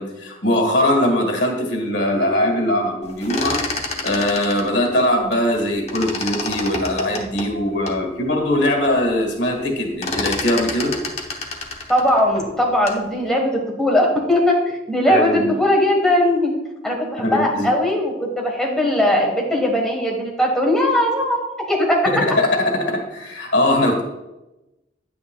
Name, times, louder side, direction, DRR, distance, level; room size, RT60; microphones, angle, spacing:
voice 1, 0.0-3.6 4.0-10.9 15.1-15.5 17.2-17.7 22.1-24.0, left 1 dB, 85° left, 1 dB, 1.9 m, -21 dB
sound 1, 3.1-5.6 5.9-8.0 8.5-8.6 8.9-9.3 9.5-13.1, left 2 dB, 35° left, 0.9 m, -29 dB
voice 2, 11.9-13.5 13.8-16.5 16.8-22.0, left 1 dB, 5° left, -1 dB, 1.4 m, -19 dB
9.6 x 8.8 x 2.3 m, 0.99 s
head